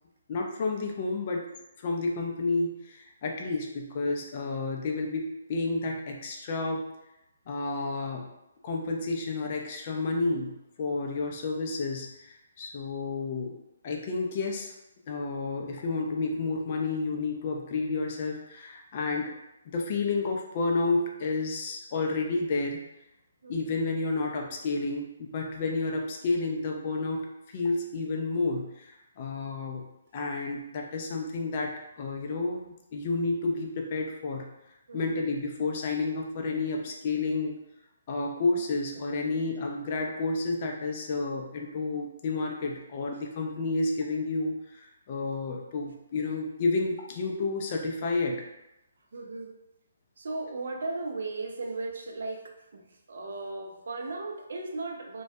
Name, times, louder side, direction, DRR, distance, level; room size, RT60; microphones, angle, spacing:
voice 1, 0.3-1.5 1.8-6.9 7.5-8.3 8.6-13.6 13.8-14.7 15.1-19.3 19.7-22.8 23.5-29.9 30.1-34.5 34.9-37.5 38.1-48.4, left 3 dB, 40° left, 1 dB, 0.4 m, -30 dB
voice 2, 23.4-23.8 34.9-35.2 49.1-49.5 50.2-55.2, right 3 dB, 70° right, 1 dB, 0.4 m, -36 dB
2.2 x 2.1 x 2.6 m, 0.91 s
hypercardioid pair, 145°, 0 cm